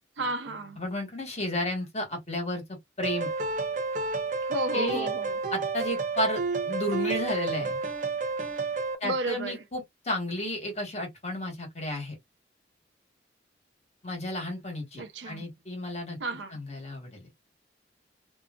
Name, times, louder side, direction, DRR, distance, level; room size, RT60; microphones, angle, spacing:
voice 1, 0.2-0.8 4.4-5.3 9.0-9.6 15.0-15.5 16.2-16.5, right 2 dB, 85° right, 0.7 m, -32 dB
voice 2, 0.8-3.3 4.7-5.1 5.5-7.8 9.0-12.2 14.0-16.2 16.5-17.4, left 1 dB, 35° left, 1.4 m, -32 dB
sound 1, 3.0-9.0, right 4 dB, 45° right, 0.5 m, -30 dB
2.7 x 2.4 x 2.4 m
head